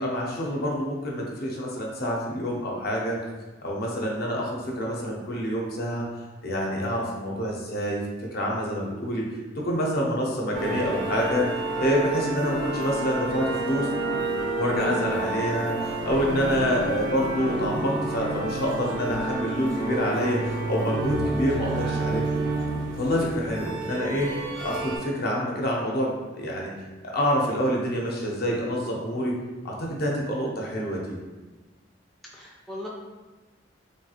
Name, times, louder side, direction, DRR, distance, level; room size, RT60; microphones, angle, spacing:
voice 1, 0.0-3.2 3.6-6.0 6.4-8.0 8.3-9.2 9.6-11.5 11.8-13.9 14.6-22.3 23.0-26.7 27.0-29.3 29.6-31.2, equal, 55° left, -2 dB, 0.6 m, -27 dB
sound 1, 10.5-25.0, right 2 dB, 85° right, 0.6 m, -30 dB
voice 2, 32.2-32.9, left 1 dB, ahead, -4 dB, 0.3 m, -39 dB
3.2 x 2.3 x 2.8 m, 1.2 s
head